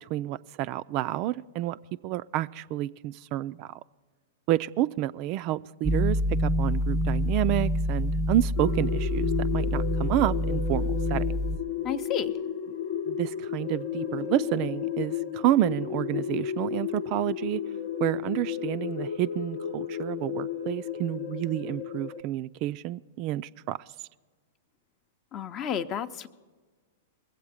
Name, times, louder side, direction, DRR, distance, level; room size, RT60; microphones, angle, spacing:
voice 1, 0.1-1.8 2.0-3.8 4.5-11.4 13.1-17.6 18.0-23.8, right 14 dB, 45° right, 0.3 m, -29 dB
sound 1, 5.8-11.6, equal, 5° right, 0.6 m, -27 dB
sound 2, 8.6-22.2, left 9 dB, 65° left, 0.8 m, -33 dB
voice 2, 11.8-12.3 25.3-26.3, left 8 dB, 35° left, 0.6 m, -31 dB
20.5 x 7.9 x 4.9 m
hypercardioid pair, 105°, 0 cm